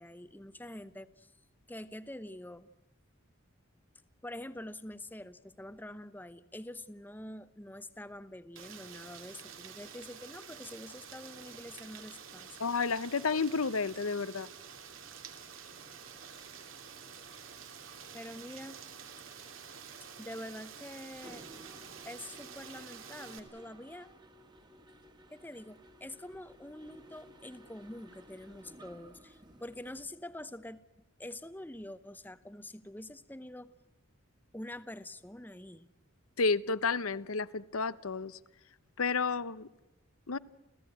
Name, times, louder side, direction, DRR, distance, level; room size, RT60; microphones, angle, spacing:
voice 1, 0.0-1.3 1.7-2.7 4.2-12.5 18.1-18.8 20.2-21.5 22.0-24.1 25.3-30.8 31.2-33.7 34.5-35.9, left 1 dB, 10° left, 0.7 m, -46 dB
Rain, 8.6-23.4, right 7 dB, 70° right, 2.9 m, -49 dB
voice 2, 12.6-14.5 36.4-38.4 39.0-39.7 40.3-40.4, left 4 dB, 90° left, 0.9 m, -31 dB
Mechanisms, 21.1-30.1, right 1 dB, 20° right, 1.8 m, -56 dB
30.0 x 15.5 x 8.9 m
head